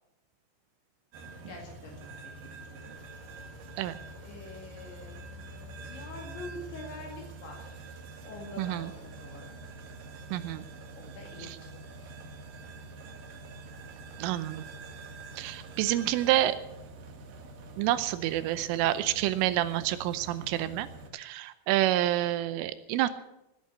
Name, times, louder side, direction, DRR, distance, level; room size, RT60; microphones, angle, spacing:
sound 1, 1.1-21.1, right 2 dB, 60° right, 2.5 m, -46 dB
voice 1, 1.5-1.9 2.4-2.9 4.2-5.1 5.8-7.9 8.3-9.6 11.0-12.0, left 2 dB, 65° left, 0 dB, 4.4 m, -45 dB
voice 2, 8.6-8.9 10.3-10.6 14.2-14.6 15.4-16.6 17.8-20.9 21.1-23.1, right 14 dB, 80° right, 13 dB, 3.2 m, -28 dB
19.0 x 9.1 x 8.2 m, 0.90 s
omnidirectional pair, 5.9 m